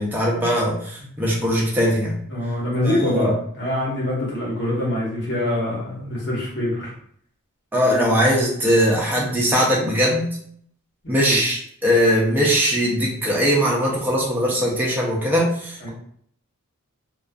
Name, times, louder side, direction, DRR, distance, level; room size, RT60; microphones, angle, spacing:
voice 1, 0.0-2.2 2.8-3.3 7.7-10.4 11.1-15.9, equal, 10° right, -5 dB, 0.5 m, -20 dB
voice 2, 2.3-6.9 11.0-11.4 15.8-15.9, left 1 dB, 50° left, -5 dB, 1.1 m, -24 dB
2.4 x 2.2 x 2.4 m, 0.63 s
head